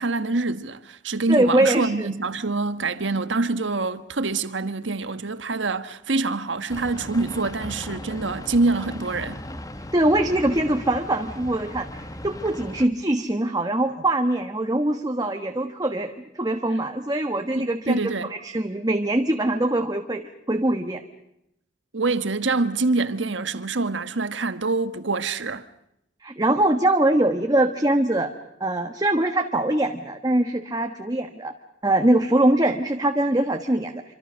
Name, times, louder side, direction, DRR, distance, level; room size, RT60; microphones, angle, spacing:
voice 1, 0.0-9.4 17.6-18.3 21.9-25.7, right 3 dB, 80° right, 1.4 m, -25 dB
voice 2, 1.3-2.1 9.9-21.0 26.2-28.3 28.6-31.5 31.8-34.0, right 1 dB, 20° right, 1.3 m, -23 dB
sound 1, 6.7-12.9, left 1 dB, 20° left, 1.3 m, -37 dB
26.5 x 25.5 x 6.3 m
head